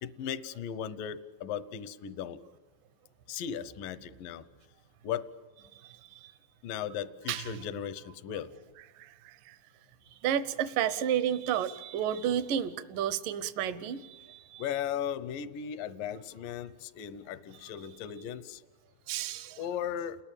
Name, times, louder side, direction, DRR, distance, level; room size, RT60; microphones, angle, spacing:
voice 1, 0.0-2.4 3.3-4.5 5.0-5.3 6.6-8.5 14.6-18.6 19.6-20.2, left 9 dB, 75° left, 15 dB, 2.0 m, -37 dB
voice 2, 5.8-6.3 7.3-7.6 9.0-9.6 10.2-14.6 19.1-19.6, right 9 dB, 70° right, 14 dB, 2.2 m, -32 dB
30.0 x 20.5 x 8.9 m, 1.3 s
omnidirectional pair, 5.1 m